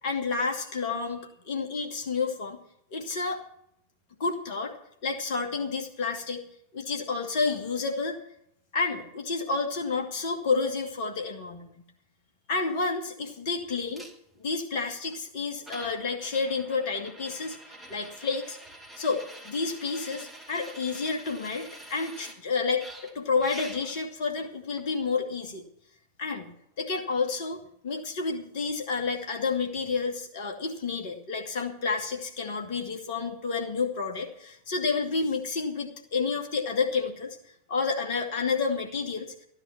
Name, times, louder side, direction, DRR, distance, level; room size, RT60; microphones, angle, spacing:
voice 1, 0.0-2.6 2.9-3.4 4.2-4.8 5.0-6.4 6.7-8.2 8.7-11.8 12.5-14.1 14.4-17.6 17.9-18.6 19.0-25.6 26.2-37.4 37.7-39.3, left 4 dB, 50° left, 3 dB, 2.3 m, -30 dB
sound 1, 13.9-14.1 15.1-15.2 15.6-22.4 22.8-24.1 24.8-24.9, right 1 dB, ahead, 3.1 m, -46 dB
14.5 x 10.5 x 6.0 m, 0.74 s
figure-of-eight pair, 90°, 0 cm